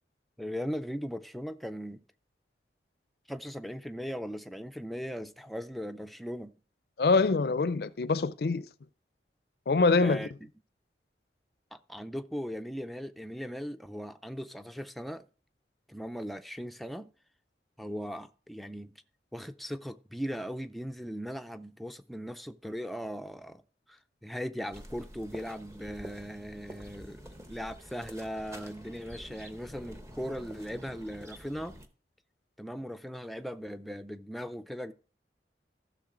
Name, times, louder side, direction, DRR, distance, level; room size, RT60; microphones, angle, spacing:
voice 1, 0.4-2.0 3.3-6.6 10.0-10.3 11.7-15.3 15.9-17.1 17.8-18.9 19.3-23.6 23.9-27.2 27.5-31.8 32.6-34.9, equal, ahead, 0.4 m, -38 dB
voice 2, 7.0-8.6 9.7-10.3, left 4 dB, 60° left, 0.4 m, -25 dB
sound 1, 24.7-31.9, equal, 15° right, 0.8 m, -48 dB
14.5 x 6.6 x 3.8 m
head